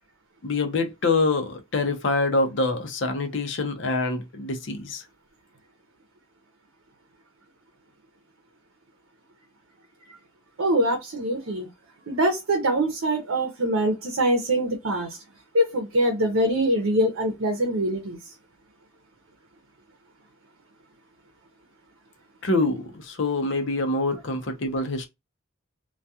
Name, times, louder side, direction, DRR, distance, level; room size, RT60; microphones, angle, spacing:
voice 1, 0.4-5.0 22.4-25.1, left 3 dB, 60° left, 0.6 m, -25 dB
voice 2, 10.6-11.7 12.1-15.2 15.5-18.2, right 1 dB, 90° right, 0.7 m, -24 dB
2.3 x 2.3 x 2.7 m
head